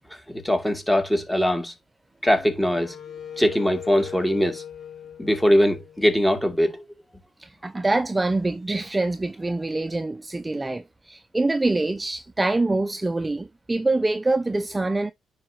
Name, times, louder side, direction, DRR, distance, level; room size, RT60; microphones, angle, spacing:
voice 1, 0.3-1.7 2.2-2.9 3.4-4.6 5.2-6.8, equal, 5° left, 2.3 m, -21 dB
Wind instrument woodwind instrument, 2.2-6.4, left 8 dB, 60° left, 3.4 m, -40 dB
voice 2, 7.4-15.1, right 2 dB, 15° right, 0.5 m, -25 dB
9.7 x 4.8 x 2.9 m
cardioid pair, 90°, 0 cm